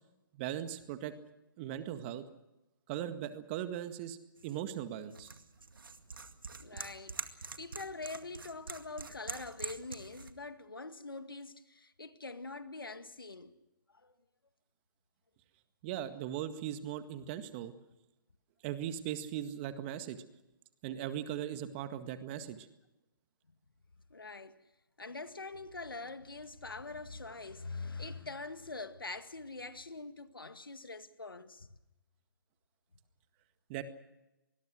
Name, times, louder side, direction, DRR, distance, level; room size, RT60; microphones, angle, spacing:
voice 1, 0.3-1.1 1.6-2.2 2.9-4.2 4.4-5.3 15.8-17.7 18.6-20.2 20.8-22.7 33.7-33.8, right 11 dB, 30° right, 1.9 m, -39 dB
sound 1, 4.4-10.3, right 4 dB, 75° right, 2.1 m, -45 dB
voice 2, 6.6-13.6 14.0-14.1 24.1-24.6 25.0-31.7, left 3 dB, 85° left, 1.9 m, -44 dB
25.5 x 21.0 x 6.3 m
figure-of-eight pair, 130°, 11 cm